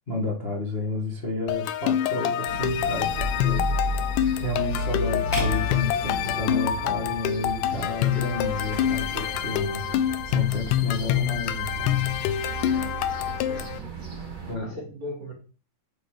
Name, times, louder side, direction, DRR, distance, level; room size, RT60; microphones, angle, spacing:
voice 1, 0.1-3.7 4.4-12.0 14.5-14.8, left 2 dB, 50° left, 0.6 m, -31 dB
sound 1, 1.5-13.8, left 11 dB, 85° left, 1.9 m, -26 dB
sound 2, 2.5-14.6, equal, 45° right, 1.1 m, -33 dB
sound 3, 5.3-7.6, right 1 dB, 5° right, 1.5 m, -35 dB
voice 2, 12.6-13.8 14.5-15.3, left 1 dB, 75° right, 0.8 m, -40 dB
9.5 x 5.0 x 5.0 m
omnidirectional pair, 4.4 m